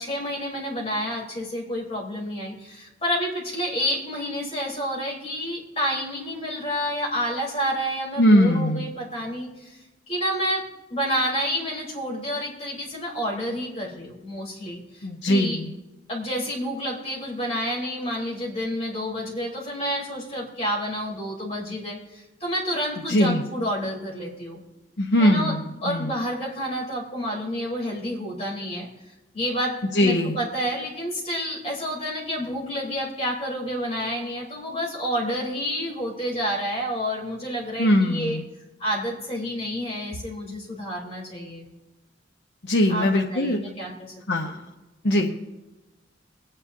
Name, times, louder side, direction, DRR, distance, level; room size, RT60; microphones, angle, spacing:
voice 1, 0.0-9.8 10.1-15.6 16.1-24.6 25.2-28.9 29.3-38.4 38.8-41.7 42.9-44.1 44.4-44.5, equal, 35° left, -4 dB, 3.8 m, -29 dB
voice 2, 8.2-8.9 15.0-15.7 23.1-23.4 25.0-25.6 25.9-26.1 29.9-30.4 37.8-38.4 42.6-43.6 44.3-44.6 45.0-45.4, left 1 dB, 65° left, 1 dB, 0.9 m, -20 dB
22.5 x 9.9 x 2.7 m, 1.1 s
head